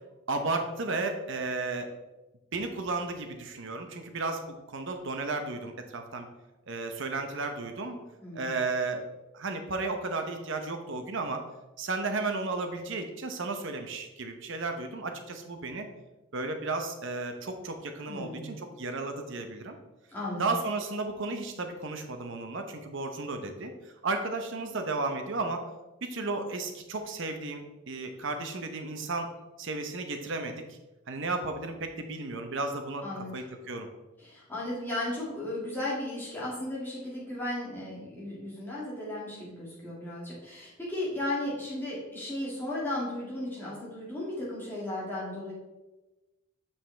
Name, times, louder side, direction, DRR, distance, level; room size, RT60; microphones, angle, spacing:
voice 1, 0.3-1.9 2.5-6.3 6.7-8.0 8.3-9.0 9.3-11.4 11.8-15.9 16.3-19.8 20.4-25.6 26.0-29.3 29.6-30.8 31.1-33.0 33.3-33.9, right 3 dB, 60° right, 6 dB, 0.8 m, -33 dB
voice 2, 8.2-8.5 18.1-18.6 20.1-20.4 33.0-33.3 34.2-45.5, left 1 dB, 10° left, -7 dB, 2.1 m, -35 dB
7.2 x 5.5 x 3.4 m, 1.1 s
head